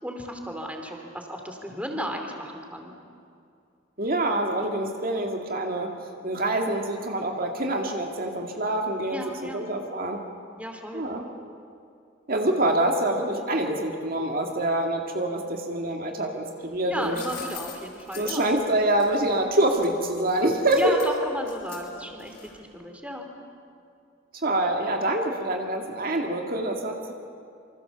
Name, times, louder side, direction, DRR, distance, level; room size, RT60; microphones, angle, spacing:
voice 1, 0.0-2.9 9.1-9.7 10.6-11.1 16.9-18.5 20.7-23.3, equal, 5° right, 3 dB, 2.7 m, -34 dB
voice 2, 4.0-5.9 6.2-10.2 10.9-11.2 12.3-17.2 18.2-20.9 24.4-27.1, right 1 dB, 50° right, 2 dB, 2.2 m, -26 dB
sound 1, 16.7-22.7, left 8 dB, 60° left, 7.0 m, -43 dB
27.5 x 25.5 x 7.0 m, 2.5 s
head